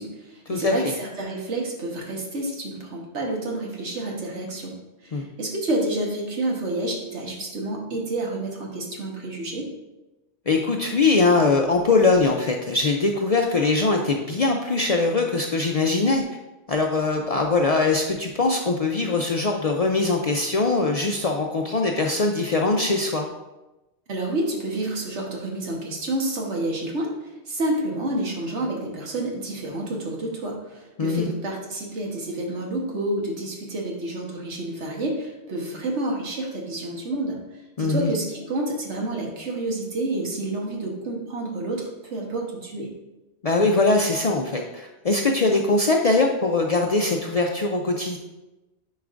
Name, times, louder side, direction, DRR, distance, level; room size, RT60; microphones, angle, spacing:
voice 1, 0.0-4.7 5.0-9.7 24.1-37.4 37.8-42.9, right 1 dB, 85° right, 0 dB, 1.5 m, -29 dB
voice 2, 10.5-16.2 16.7-23.3 31.0-31.3 37.8-38.1 43.4-48.2, left 3 dB, 55° left, 2 dB, 0.4 m, -22 dB
9.3 x 4.7 x 2.5 m, 1.0 s
omnidirectional pair, 1.2 m